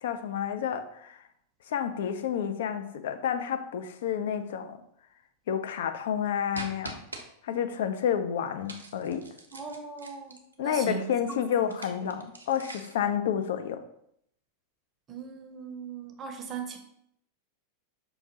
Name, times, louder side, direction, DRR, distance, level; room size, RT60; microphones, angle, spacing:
voice 1, 0.0-1.2 1.7-4.8 5.5-7.0 7.4-9.2 10.6-13.8, left 8 dB, 60° left, 0.4 m, -30 dB
sound 1, 6.5-7.2 8.7-10.5 11.6-13.1, right 2 dB, 80° right, 0.5 m, -43 dB
voice 2, 9.5-11.1 11.6-11.7 12.0-12.1 15.1-16.8, right 6 dB, 25° right, 0.6 m, -39 dB
5.1 x 2.5 x 2.9 m
figure-of-eight pair, 90°, 0 cm